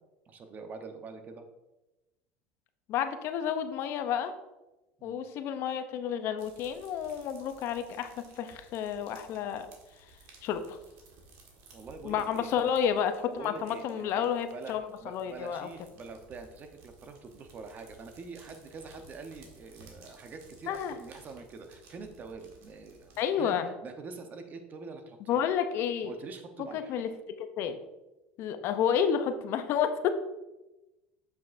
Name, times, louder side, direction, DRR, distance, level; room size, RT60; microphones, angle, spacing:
voice 1, 0.3-1.4 5.0-5.2 11.7-12.7 13.4-14.2 14.5-25.4 26.0-27.0, right 4 dB, 35° right, 6 dB, 0.8 m, -45 dB
voice 2, 2.9-4.3 5.0-9.7 10.4-10.8 12.0-15.7 20.7-20.9 23.2-23.7 25.3-26.1 26.7-27.8 28.4-30.1, left 8 dB, 55° left, 9 dB, 0.6 m, -30 dB
sound 1, 6.4-23.2, right 3 dB, 65° right, 1.6 m, -57 dB
7.1 x 6.2 x 2.6 m, 1.0 s
supercardioid pair, 110°, 5 cm